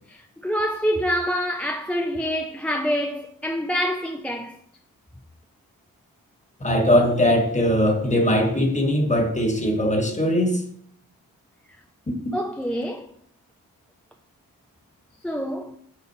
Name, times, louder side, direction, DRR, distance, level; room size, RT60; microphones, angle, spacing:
voice 1, 0.1-4.6 12.3-13.1 15.2-15.8, equal, 5° left, 0.4 m, -26 dB
voice 2, 6.6-10.6, equal, 20° left, 1.2 m, -20 dB
9.6 x 3.9 x 2.7 m
cardioid pair, 85°, 36 cm